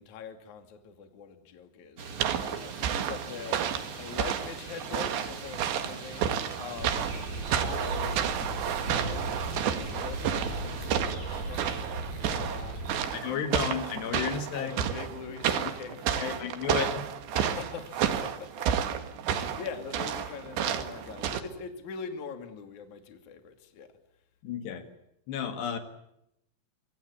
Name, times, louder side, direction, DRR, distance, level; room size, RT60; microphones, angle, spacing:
voice 1, 0.0-3.7 4.0-6.3 6.6-7.0 7.5-11.8 12.3-13.8 14.3-16.4 17.3-19.0 19.3-23.9, left 6 dB, 45° left, 3.5 m, -43 dB
sound 1, 2.0-11.0, right 5 dB, 40° right, 2.5 m, -43 dB
sound 2, 2.2-21.4, right 9 dB, 80° right, 4.1 m, -31 dB
sound 3, 6.8-12.9, right 1 dB, 55° right, 8.7 m, -36 dB
voice 2, 13.1-14.7 16.2-17.1 24.4-24.8 25.3-25.8, left 7 dB, 70° left, 4.0 m, -32 dB
25.5 x 25.0 x 8.5 m
omnidirectional pair, 5.1 m